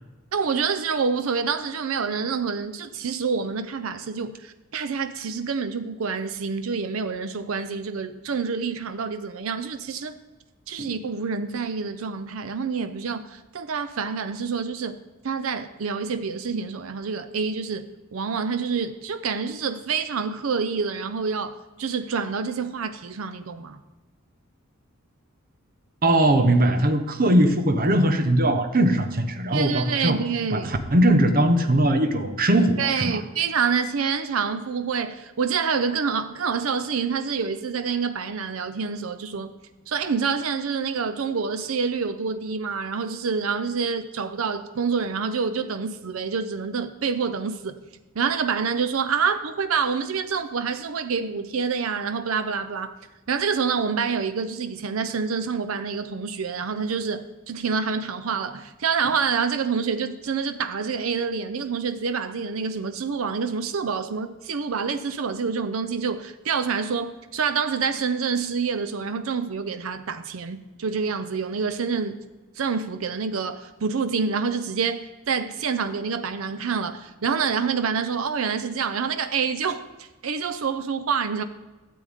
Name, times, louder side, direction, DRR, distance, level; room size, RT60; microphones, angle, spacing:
voice 1, 0.3-10.1 10.7-15.0 15.2-23.8 29.5-30.7 32.8-39.5 39.9-47.8 48.2-52.9 53.3-72.2 72.6-81.4, right 5 dB, 85° right, 0.6 m, -27 dB
voice 2, 26.0-30.2 30.5-33.2, right 1 dB, 45° right, 0.9 m, -20 dB
12.5 x 7.8 x 3.6 m
head